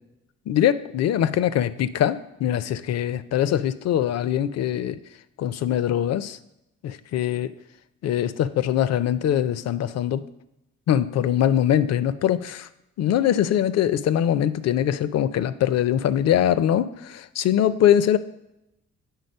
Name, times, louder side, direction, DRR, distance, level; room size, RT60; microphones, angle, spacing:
voice 1, 0.5-5.0 5.4-6.4 6.8-7.5 8.0-10.2 10.9-12.7 13.0-18.2, left 10 dB, 60° left, 15 dB, 0.5 m, -22 dB
8.1 x 3.9 x 5.4 m, 0.88 s
cardioid pair, 90°, 30 cm